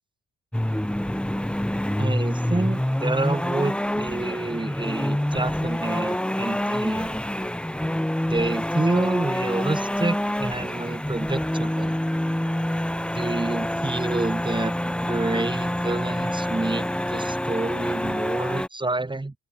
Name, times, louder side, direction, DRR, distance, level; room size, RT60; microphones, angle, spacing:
sound 1, 0.5-18.7, left 1 dB, 5° left, 1.8 m, -27 dB
voice 1, 2.0-7.2 8.3-11.9 13.1-19.3, right 2 dB, 15° right, 6.3 m, -28 dB
open air
cardioid pair, 90°, 30 cm